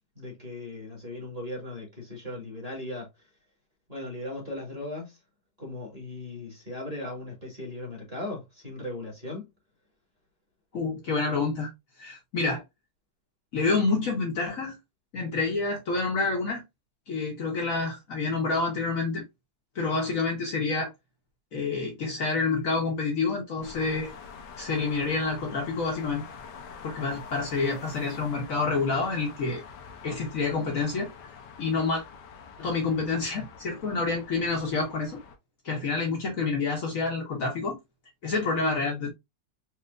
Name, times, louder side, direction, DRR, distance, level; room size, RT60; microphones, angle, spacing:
voice 1, 0.2-3.1 3.9-5.2 5.6-9.5, left 1 dB, 20° right, 1.7 m, -37 dB
voice 2, 10.7-11.7 12.0-12.6 13.5-14.8 15.1-16.6 17.1-19.2 19.7-20.9 21.5-24.1 24.6-26.2 26.8-29.6 30.0-31.1 31.6-32.0 32.6-35.2 35.6-37.8 38.2-39.1, left 4 dB, 55° left, 1.3 m, -28 dB
sound 1, 23.6-35.4, left 6 dB, 80° left, 1.4 m, -45 dB
4.3 x 3.0 x 2.5 m
omnidirectional pair, 1.8 m